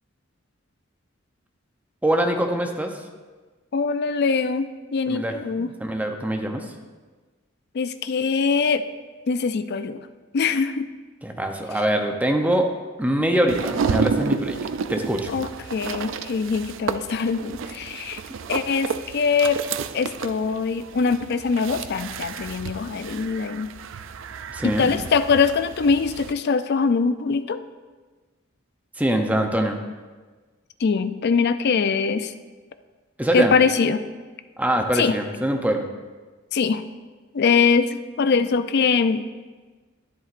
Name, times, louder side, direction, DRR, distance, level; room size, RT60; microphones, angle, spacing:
voice 1, 2.0-2.9 5.1-6.6 11.2-12.7 13.0-14.6 14.9-15.3 24.5-24.9 29.0-29.8 33.2-33.5 34.6-35.9, right 1 dB, 10° right, 4 dB, 0.7 m, -23 dB
voice 2, 3.7-5.7 7.7-8.8 9.3-10.0 10.3-10.9 15.3-18.2 18.5-19.6 19.9-23.7 24.6-27.6 30.8-32.3 33.3-34.0 35.0-35.1 36.5-36.8 37.3-39.2, left 5 dB, 55° left, 11 dB, 0.4 m, -22 dB
sound 1, 13.5-26.3, right 5 dB, 70° right, 0.4 m, -31 dB
11.0 x 9.8 x 2.5 m, 1.3 s
head